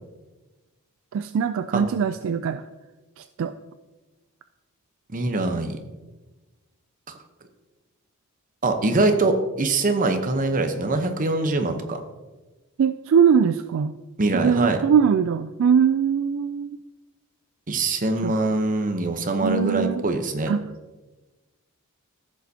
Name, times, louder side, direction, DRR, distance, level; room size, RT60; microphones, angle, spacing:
voice 1, 1.1-2.6 3.2-3.5 12.8-13.9 14.3-16.8 18.2-18.3 19.4-20.0 20.5-20.6, right 7 dB, 60° right, 10 dB, 0.3 m, -21 dB
voice 2, 5.1-5.8 7.1-7.2 8.6-12.0 14.2-14.8 17.7-20.5, right 2 dB, 40° right, 6 dB, 0.8 m, -23 dB
15.0 x 6.8 x 2.8 m, 1.2 s
head